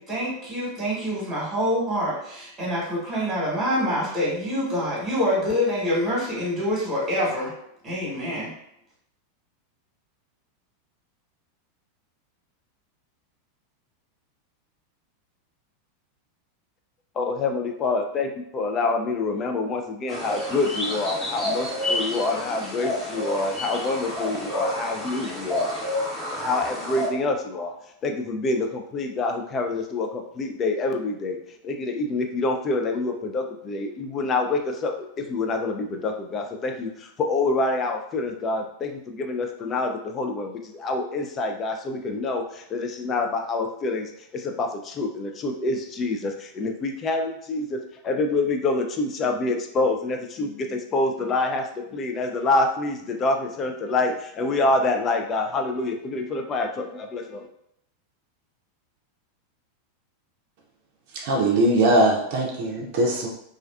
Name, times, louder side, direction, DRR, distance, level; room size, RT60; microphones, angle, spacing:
voice 1, 0.0-7.5 7.8-8.5, equal, 20° right, -7 dB, 1.1 m, -26 dB
voice 2, 17.2-25.8 26.3-31.4 31.6-57.5, left 3 dB, 35° left, 4 dB, 0.4 m, -27 dB
sound 1, 20.1-27.1, left 1 dB, 10° left, 0.9 m, -29 dB
voice 3, 61.1-63.3, right 1 dB, 55° right, -1 dB, 0.5 m, -21 dB
2.4 x 2.3 x 2.3 m, 0.75 s
hypercardioid pair, 90°, 0 cm